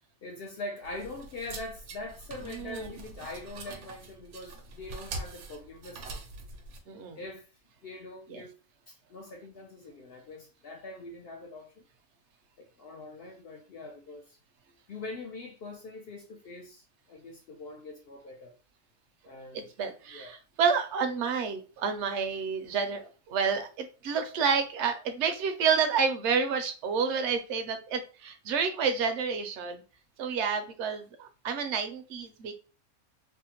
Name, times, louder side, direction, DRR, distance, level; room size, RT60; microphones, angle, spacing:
voice 1, 0.2-6.2 7.1-7.5 7.8-8.6 8.9-11.9 12.6-14.4 14.9-18.6 19.2-19.7 20.1-20.4, left 2 dB, 65° left, 0.6 m, -43 dB
sound 1, 0.8-6.8, right 3 dB, 85° right, 1.1 m, -43 dB
voice 2, 2.4-2.9 6.9-7.2 8.3-8.4 19.5-29.8 30.2-32.5, right 6 dB, 65° right, 0.8 m, -29 dB
3.5 x 2.1 x 2.8 m
omnidirectional pair, 1.5 m